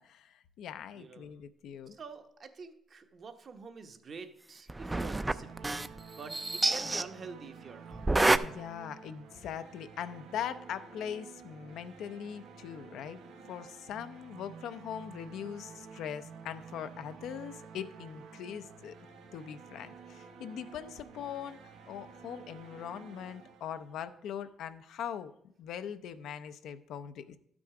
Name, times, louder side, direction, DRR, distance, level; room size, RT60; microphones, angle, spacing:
voice 1, 0.0-2.0 8.4-18.9 19.3-25.3 25.6-27.4, left 9 dB, 80° left, 11 dB, 0.5 m, -41 dB
voice 2, 0.9-1.3 1.9-8.3, right 5 dB, 50° right, 7 dB, 0.9 m, -47 dB
sound 1, 4.7-6.0 6.3-7.0 7.9-8.4, right 2 dB, 15° right, 0.4 m, -28 dB
sound 2, 5.3-24.2, right 5 dB, 90° right, 1.0 m, -51 dB
11.5 x 6.0 x 4.8 m, 0.71 s
cardioid pair, 90°, 0 cm